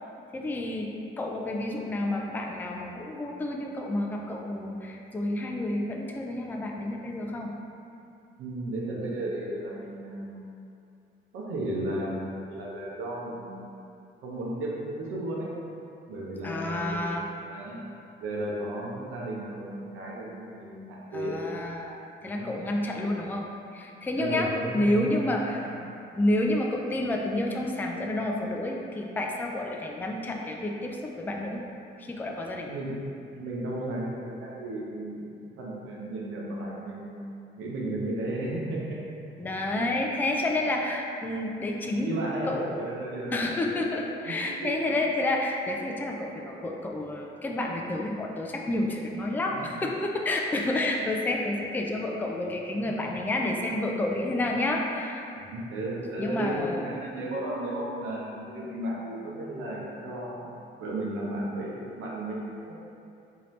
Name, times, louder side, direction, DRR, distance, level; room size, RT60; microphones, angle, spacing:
voice 1, 0.3-7.5 16.4-17.2 21.1-25.7 26.1-31.6 32.0-32.7 39.4-42.1 42.4-42.8 43.3-55.3 56.2-56.9, left 1 dB, 10° left, 0 dB, 0.3 m, -30 dB
voice 2, 8.4-10.5 11.3-13.7 14.2-15.5 16.1-17.8 18.2-21.4 22.2-22.5 24.2-25.3 25.6-25.8 32.5-33.0 33.4-37.2 37.6-39.0 39.7-39.9 41.9-43.6 44.2-44.9 49.5-49.7 52.7-53.1 55.4-60.5 60.8-62.7, right 1 dB, 80° right, -4 dB, 0.8 m, -34 dB
4.0 x 2.8 x 3.1 m, 2.6 s
cardioid pair, 90°, 20 cm